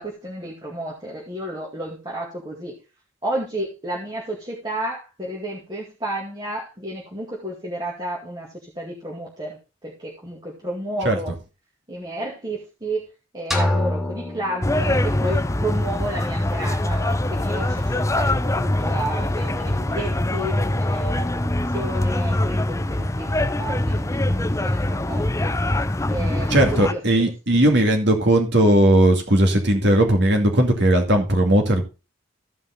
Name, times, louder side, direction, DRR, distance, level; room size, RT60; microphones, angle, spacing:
voice 1, 0.0-2.7 3.2-9.6 9.8-11.3 11.9-13.1 13.3-25.5 26.1-27.0, right 1 dB, 20° right, -4 dB, 2.1 m, -32 dB
sound 1, 13.5-15.4, left 1 dB, ahead, 1.4 m, -26 dB
sound 2, 14.6-26.9, left 1 dB, 15° left, 0.5 m, -23 dB
voice 2, 26.5-31.8, right 1 dB, 55° right, 3 dB, 2.4 m, -17 dB
14.5 x 5.3 x 3.9 m, 0.30 s
head